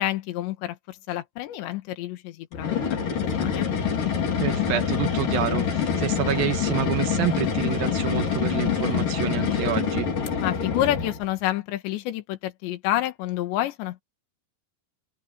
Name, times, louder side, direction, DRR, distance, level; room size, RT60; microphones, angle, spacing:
voice 1, 0.0-3.7 10.4-14.0, left 13 dB, 80° left, 3.8 m, -29 dB
sound 1, 2.5-11.3, left 7 dB, 50° left, 5.2 m, -26 dB
voice 2, 4.4-10.1, right 12 dB, 70° right, 2.5 m, -28 dB
omnidirectional pair, 5.0 m